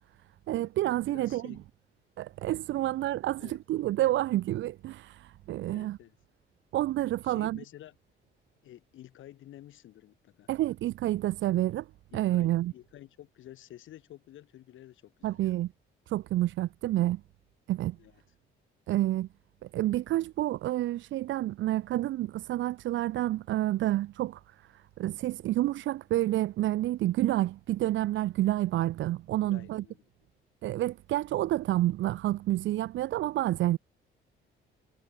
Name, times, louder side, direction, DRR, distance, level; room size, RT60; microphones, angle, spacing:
voice 1, 0.5-1.6 2.2-6.0 6.7-7.6 10.5-11.9 12.1-12.7 15.2-15.7 16.1-17.2 17.7-18.0 18.9-19.3 19.6-24.4 24.7-29.8 30.6-33.8, right 15 dB, 75° right, 0.6 m, -29 dB
voice 2, 1.1-1.6 2.8-2.9 3.4-3.6 5.6-6.2 7.2-8.0 8.6-10.5 12.1-15.5 18.0-18.2 29.4-30.0, left 13 dB, 80° left, 7.9 m, -51 dB
cardioid pair, 90°, 20 cm